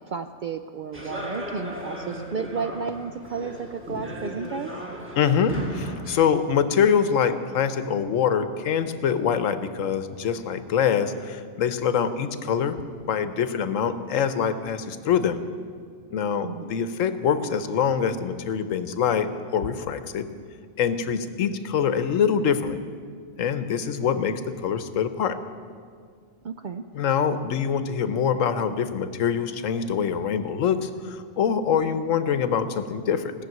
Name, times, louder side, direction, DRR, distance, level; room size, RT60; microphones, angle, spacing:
voice 1, 0.1-4.7 16.4-16.8 26.4-26.8, right 5 dB, 65° right, 8 dB, 0.5 m, -32 dB
sound 1, 0.9-6.2, equal, 10° right, 1.6 m, -36 dB
voice 2, 5.2-12.8 13.0-15.4 16.1-20.2 20.8-22.8 23.4-25.4 26.9-33.3, left 7 dB, 85° left, 11 dB, 1.2 m, -24 dB
17.5 x 6.7 x 9.2 m, 2.1 s
omnidirectional pair, 1.3 m